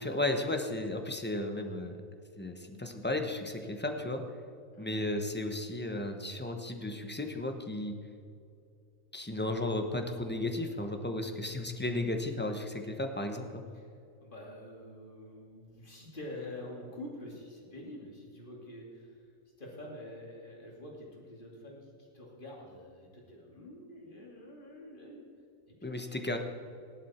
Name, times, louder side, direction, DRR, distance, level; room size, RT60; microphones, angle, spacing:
voice 1, 0.0-2.0 2.4-4.2 4.8-8.0 9.1-13.6 25.8-26.4, left 1 dB, 10° left, 5 dB, 0.8 m, -34 dB
voice 2, 4.7-5.1 13.7-13.9 14.2-19.2 19.6-25.2 25.8-26.0, left 1 dB, 35° left, -2 dB, 2.8 m, -47 dB
17.5 x 11.0 x 4.3 m, 2.5 s
omnidirectional pair, 1.5 m